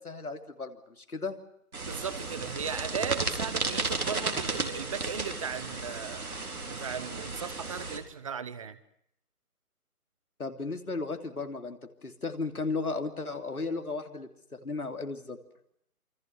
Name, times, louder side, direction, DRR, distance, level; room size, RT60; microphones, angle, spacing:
voice 1, 0.0-1.4 10.4-15.4, left 3 dB, 75° left, 6 dB, 3.1 m, -35 dB
sound 1, 1.7-8.0, right 3 dB, 70° right, 4.0 m, -34 dB
voice 2, 1.8-6.3 6.7-8.8, right 7 dB, 20° right, 15 dB, 1.1 m, -37 dB
28.5 x 24.5 x 5.9 m, 0.74 s
figure-of-eight pair, 145°, 45 cm